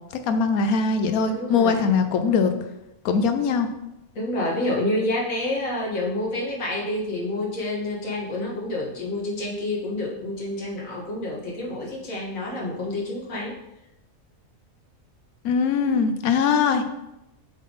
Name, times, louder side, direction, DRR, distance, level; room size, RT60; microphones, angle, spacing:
voice 1, 0.3-2.5 3.0-3.7 15.4-16.8, left 5 dB, 85° left, 8 dB, 1.1 m, -21 dB
voice 2, 1.2-1.9 4.1-13.6, left 1 dB, 70° left, -3 dB, 1.9 m, -28 dB
7.5 x 3.7 x 3.9 m, 0.90 s
omnidirectional pair, 1.5 m